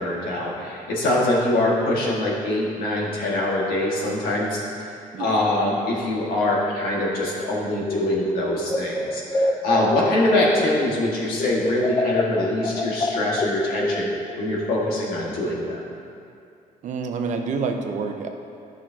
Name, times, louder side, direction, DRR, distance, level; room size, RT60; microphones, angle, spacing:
voice 1, 0.0-4.9 5.2-14.1 14.4-15.8, left 1 dB, 90° left, -4 dB, 1.8 m, -23 dB
sound 1, 7.8-11.1 11.4-14.4, left 2 dB, 25° left, 0.5 m, -27 dB
voice 2, 9.8-10.1 16.8-18.3, right 5 dB, 55° right, 5 dB, 0.7 m, -28 dB
12.0 x 6.1 x 2.9 m, 2.5 s
cardioid pair, 145°, 15 cm